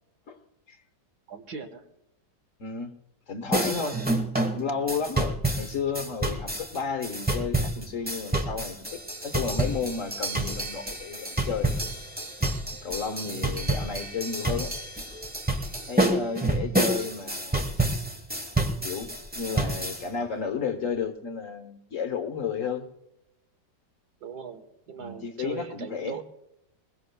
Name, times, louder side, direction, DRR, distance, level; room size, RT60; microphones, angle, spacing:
voice 1, 1.3-1.8 3.8-4.0 13.2-13.6 22.3-22.4 24.2-26.2, right 5 dB, 70° right, 8 dB, 1.8 m, -39 dB
voice 2, 2.6-2.9 3.3-4.0 4.5-11.7 12.8-14.7 15.9-17.7 18.8-22.8 24.9-26.2, left 6 dB, 50° left, 7 dB, 1.4 m, -32 dB
sound 1, 3.5-20.0, right 2 dB, 5° right, 1.0 m, -28 dB
22.0 x 21.0 x 2.3 m, 0.84 s
omnidirectional pair, 1.8 m